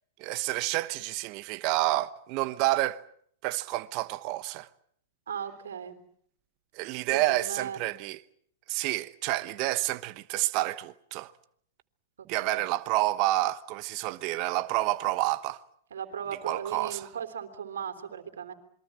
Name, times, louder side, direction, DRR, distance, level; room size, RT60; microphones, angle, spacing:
voice 1, 0.2-3.0 3.4-4.7 6.7-8.2 8.7-11.3 12.3-15.6 16.4-17.1, right 17 dB, 45° right, 1.0 m, -29 dB
voice 2, 5.3-6.0 7.1-7.8 12.4-12.6 15.9-18.5, right 8 dB, 75° right, 3.5 m, -37 dB
27.5 x 23.0 x 7.5 m
hypercardioid pair, 115°, 0 cm